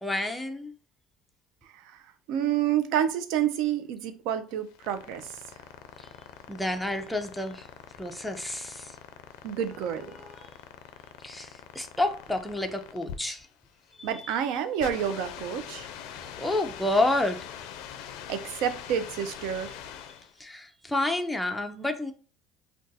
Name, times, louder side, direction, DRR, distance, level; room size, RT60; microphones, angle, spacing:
voice 1, 0.0-0.7 6.0-6.1 6.5-7.7 8.0-9.0 10.1-10.5 11.2-13.5 14.0-14.3 16.1-17.5 20.4-22.1, left 2 dB, ahead, 0.4 m, -30 dB
voice 2, 2.3-5.4 9.4-10.1 14.0-15.9 18.3-19.7, right 9 dB, 70° right, 0.4 m, -29 dB
sound 1, 4.5-20.4, left 9 dB, 80° left, 0.4 m, -44 dB
2.5 x 2.3 x 3.9 m
supercardioid pair, 115°, 0 cm